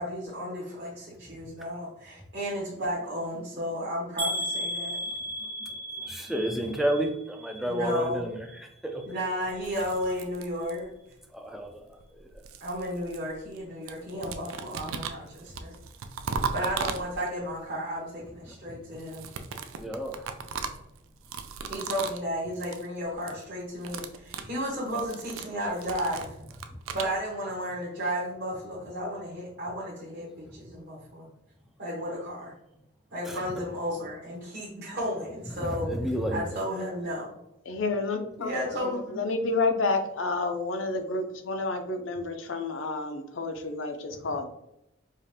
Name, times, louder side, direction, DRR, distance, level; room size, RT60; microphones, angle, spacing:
voice 1, 0.0-5.0 7.6-8.2 9.0-10.9 12.6-15.7 16.5-19.3 21.7-26.3 26.9-31.3 31.8-32.5 33.1-35.9 36.3-37.3 38.4-39.2, equal, 50° right, -7 dB, 1.0 m, -33 dB
sound 1, 4.2-8.2 8.5-9.1 9.5-9.7 10.0-10.1, equal, 25° right, 0.9 m, -35 dB
voice 2, 6.1-8.4 8.8-9.0 11.3-11.8 19.8-20.3 33.3-33.4 35.6-36.4, equal, ahead, 2 dB, 0.3 m, -30 dB
sound 2, 9.5-11.1 12.0-13.6 13.9-17.5 18.9-22.3 22.5-22.9 23.1-23.4 23.7-27.1, right 5 dB, 85° right, 0.4 m, -37 dB
voice 3, 37.7-44.5, left 3 dB, 70° left, 6 dB, 0.6 m, -30 dB
4.9 x 2.5 x 2.8 m, 0.86 s
head